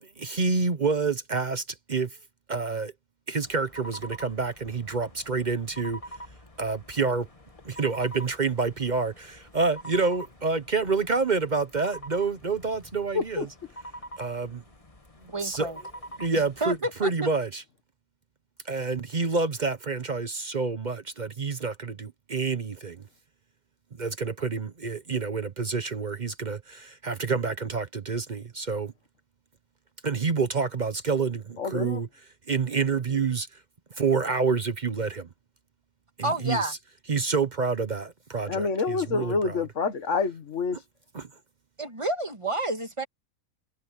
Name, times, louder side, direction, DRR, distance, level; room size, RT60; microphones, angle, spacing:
voice 1, 0.0-2.2 2.5-2.9 3.3-6.0 6.6-7.3 7.6-13.5 14.2-14.6 15.2-15.7 16.2-17.6 18.6-23.0 24.0-28.9 30.0-32.1 32.5-33.5 34.0-35.3 36.2-36.8 37.1-39.6 41.1-41.3, right 4 dB, 40° right, 0.9 m, -28 dB
sound 1, 3.4-16.8, right 1 dB, 25° left, 1.9 m, -46 dB
voice 2, 13.1-13.5 31.6-32.0 38.5-40.8, left 4 dB, 65° left, 1.8 m, -27 dB
voice 3, 15.3-15.8 16.6-17.3 36.2-36.7 41.8-43.0, right 1 dB, 20° right, 2.0 m, -29 dB
omnidirectional pair, 1.4 m